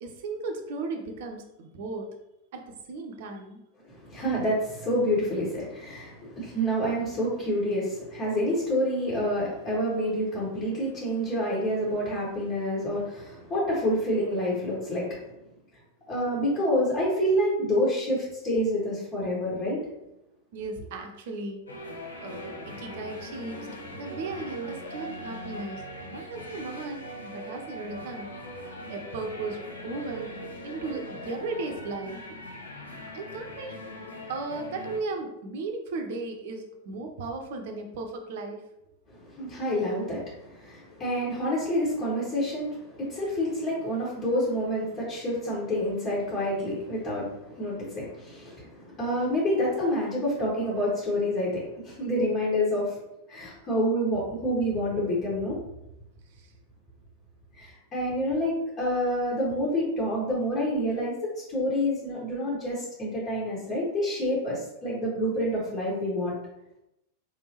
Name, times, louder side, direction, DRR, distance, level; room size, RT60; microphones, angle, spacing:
voice 1, 0.0-2.1 2.5-3.6 20.5-21.7 22.2-28.3 28.9-32.7 33.1-33.8 34.3-38.6 56.4-56.5, right 3 dB, 55° right, 4 dB, 0.7 m, -36 dB
voice 2, 3.8-15.3 16.1-19.8 39.1-53.0 53.3-55.6 57.5-66.3, equal, 30° left, -7 dB, 1.7 m, -28 dB
sound 1, 21.7-35.0, equal, 75° left, 0.7 m, -40 dB
4.6 x 3.5 x 2.9 m, 0.87 s
figure-of-eight pair, 90°, 0 cm